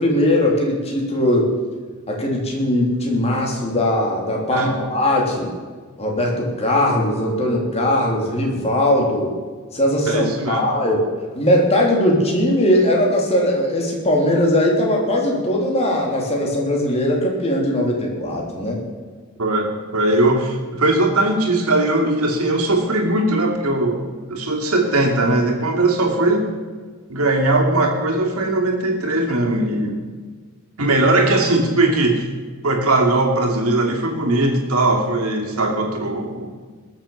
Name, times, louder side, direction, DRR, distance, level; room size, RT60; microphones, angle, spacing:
voice 1, 0.0-1.5 2.1-5.5 6.0-9.3 9.7-11.0 11.3-18.8, left 1 dB, 30° left, -1 dB, 3.2 m, -19 dB
voice 2, 10.1-10.6 19.4-26.5 27.1-30.0 30.8-32.3 32.6-36.5, right 2 dB, 80° right, 2 dB, 2.6 m, -19 dB
20.0 x 7.3 x 7.2 m, 1.5 s
head